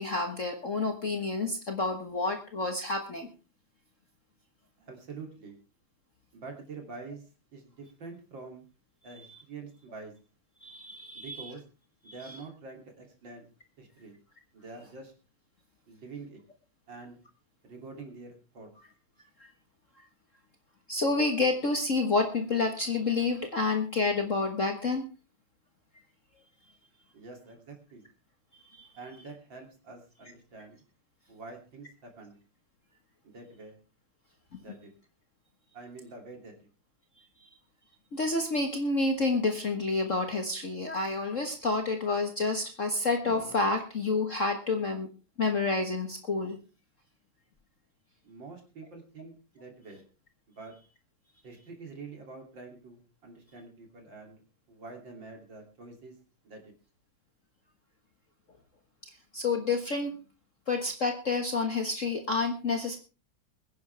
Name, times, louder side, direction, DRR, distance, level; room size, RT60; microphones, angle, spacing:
voice 1, 0.0-3.3 10.6-11.5 12.3-12.4 19.4-19.5 20.9-25.1 28.8-28.9 38.1-45.1 45.4-46.6 59.3-60.2 60.7-63.0, left 3 dB, 40° left, 4 dB, 1.6 m, -29 dB
voice 2, 4.8-5.6 6.3-7.2 7.5-8.6 9.0-10.1 11.1-11.6 12.0-13.5 13.8-14.2 14.5-15.1 15.9-16.4 16.9-17.2 17.6-18.7 27.1-28.0 28.9-30.8 31.3-32.4 33.2-33.8 34.6-34.9 35.7-36.7 48.2-50.0 50.5-50.7 51.4-54.4 54.7-56.2 56.4-56.7, right 3 dB, 60° right, 2 dB, 3.6 m, -46 dB
22.5 x 10.0 x 3.4 m, 0.33 s
omnidirectional pair, 2.3 m